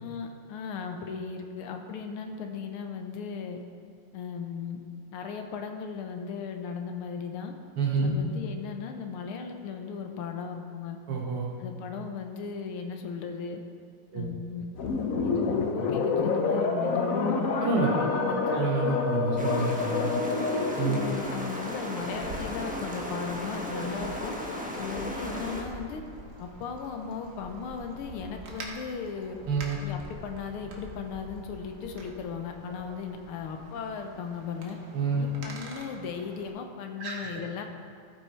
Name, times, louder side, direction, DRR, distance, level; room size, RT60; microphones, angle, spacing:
voice 1, 0.0-3.6 4.1-4.8 5.1-7.5 8.0-11.0 11.6-13.6 14.1-14.7 15.2-17.6 18.0-18.6 20.8-24.4 24.8-26.0 26.4-29.4 29.8-34.8 35.2-37.6, left 6 dB, 80° left, 5 dB, 1.7 m, -37 dB
voice 2, 7.8-8.1 11.1-11.5 14.1-14.3 17.2-17.3 17.6-20.1 20.8-21.0 23.7-23.8 25.2-25.3 29.5-29.8 34.9-35.2 37.0-37.4, right 4 dB, 90° right, -3 dB, 2.5 m, -28 dB
sound 1, 14.8-21.2, left 4 dB, 65° left, 0.8 m, -28 dB
sound 2, 19.4-25.6, left 1 dB, 10° right, 0.5 m, -35 dB
Wind, 20.5-36.5, right 2 dB, 55° right, 1.7 m, -46 dB
15.0 x 5.9 x 4.5 m, 2.1 s
omnidirectional pair, 2.4 m